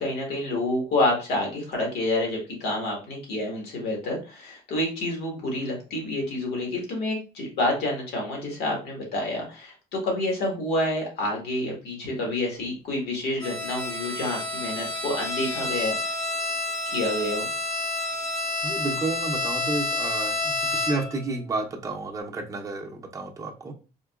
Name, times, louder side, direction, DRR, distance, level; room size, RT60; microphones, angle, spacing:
voice 1, 0.0-16.3 16.9-17.5, left 1 dB, 75° left, 0 dB, 1.5 m, -28 dB
Bowed string instrument, 13.4-21.2, left 2 dB, 25° left, 0.8 m, -29 dB
voice 2, 18.6-23.7, right 3 dB, 20° right, 1 dB, 0.6 m, -31 dB
3.8 x 2.7 x 2.3 m, 0.33 s
cardioid pair, 110°, 17 cm